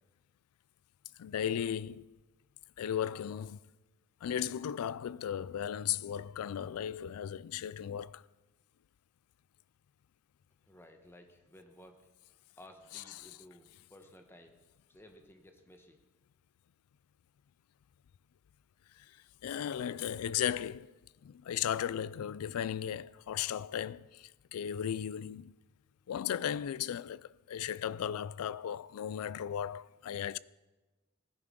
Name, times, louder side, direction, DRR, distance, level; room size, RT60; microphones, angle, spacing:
voice 1, 1.2-2.1 2.8-3.6 4.2-8.2 12.9-13.4 19.4-20.9 21.2-25.5 26.1-30.4, left 9 dB, 75° left, 0.3 m, -36 dB
voice 2, 10.7-12.0 12.6-14.5 14.9-16.0, left 1 dB, 10° left, 1.0 m, -56 dB
16.0 x 10.5 x 3.7 m
head